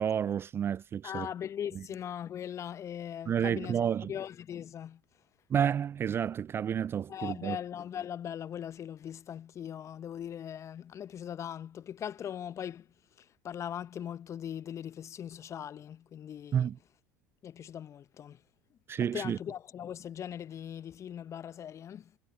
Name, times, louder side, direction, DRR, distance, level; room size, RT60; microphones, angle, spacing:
voice 1, 0.0-1.3 3.3-4.1 5.5-7.6 16.5-16.8 18.9-19.4, right 8 dB, 25° right, 0.3 m, -30 dB
voice 2, 1.0-3.8 4.1-5.0 7.1-16.7 17.4-18.4 18.7-22.1, left 9 dB, 35° left, 0.9 m, -40 dB
figure-of-eight pair, 75°, 9 cm